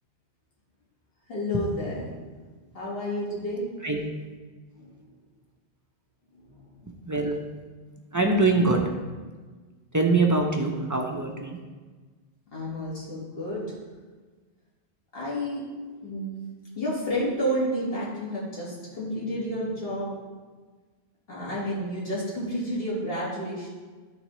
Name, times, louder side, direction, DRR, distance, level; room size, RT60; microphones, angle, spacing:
voice 1, 1.3-2.1 2.7-3.6 4.8-4.9 6.3-6.7 12.5-13.7 15.1-16.4 16.7-20.1 21.3-23.7, equal, 60° left, -6 dB, 1.9 m, -30 dB
voice 2, 7.1-7.4 8.1-8.8 9.9-11.6, right 3 dB, 25° right, 0 dB, 0.4 m, -23 dB
10.5 x 3.7 x 3.1 m, 1.4 s
omnidirectional pair, 1.1 m